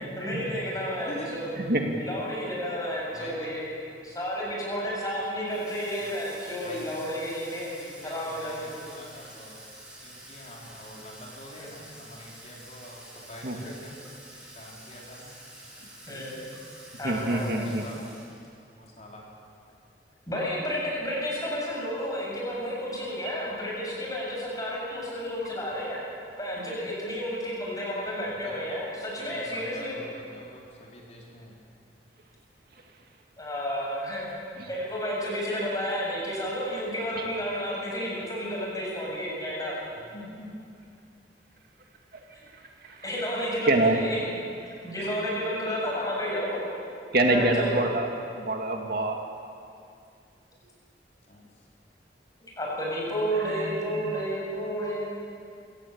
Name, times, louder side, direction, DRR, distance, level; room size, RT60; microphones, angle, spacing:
voice 1, 0.2-1.5 2.0-3.7 4.0-7.7 8.0-8.7 11.6-11.7 13.6-13.7 16.1-16.5 17.0-17.7 20.3-26.0 26.4-30.0 33.4-34.2 34.7-39.8 43.0-46.7 47.3-47.8 52.6-55.2, equal, 20° left, -4 dB, 7.8 m, -31 dB
voice 2, 1.0-1.5 3.1-3.5 6.0-6.1 6.6-7.1 7.8-9.6 10.0-14.0 14.5-15.3 16.0-16.2 17.3-18.1 18.8-19.2 26.6-26.7 28.2-28.5 29.2-31.6 39.9-40.5 45.0-45.1 51.3-51.7, left 1 dB, 40° left, -3 dB, 4.8 m, -46 dB
Water tap faucet / Sink (filling or washing), 5.4-18.6, right 1 dB, 5° right, 7.2 m, -48 dB
voice 3, 17.0-17.8 34.6-34.7 37.2-37.3 42.1-42.2 42.5-43.0 43.6-44.0 47.1-49.2 53.2-54.2, right 2 dB, 60° right, 2 dB, 2.3 m, -26 dB
26.5 x 16.5 x 8.8 m, 2.4 s
head